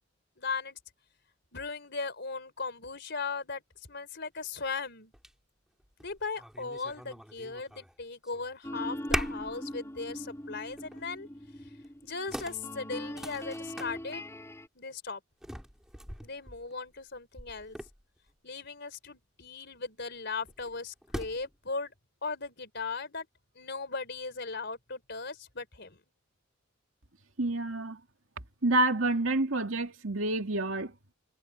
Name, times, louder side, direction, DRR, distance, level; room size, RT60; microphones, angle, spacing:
voice 1, 0.4-0.8 1.5-3.6 3.9-5.1 6.0-11.3 12.0-14.3 14.7-15.2 16.2-17.8 18.4-21.9 22.2-23.3 23.6-26.0, left 4 dB, 55° left, 4.3 m, -38 dB
sound 1, 4.4-4.5 5.1-5.3 5.8-8.0 8.2-8.7 9.1-9.6 10.0-10.2 10.7-11.1 11.8-11.9 12.3-13.9 15.4-18.3 20.5-21.6, equal, 5° right, 5.9 m, -40 dB
sound 2, 8.6-14.7, left 1 dB, 15° left, 5.6 m, -41 dB
voice 2, 27.4-28.0 28.6-30.9, right 2 dB, 70° right, 2.4 m, -28 dB
head